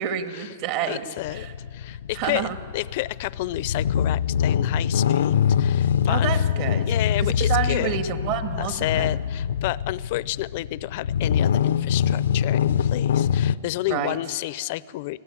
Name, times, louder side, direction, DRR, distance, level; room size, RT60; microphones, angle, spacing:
voice 1, 0.0-1.0 1.3-1.5 2.2-2.6 6.1-6.9 7.2-9.1 13.9-14.2, right 9 dB, 45° right, 7 dB, 1.7 m, -28 dB
voice 2, 0.9-1.5 1.7-6.4 6.9-8.0 8.6-15.2, left 17 dB, 50° left, 19 dB, 0.6 m, -30 dB
sound 1, 1.2-13.5, left 8 dB, 90° left, 0.6 m, -24 dB
25.5 x 16.5 x 9.8 m, 2.1 s
supercardioid pair, 155°, 0 cm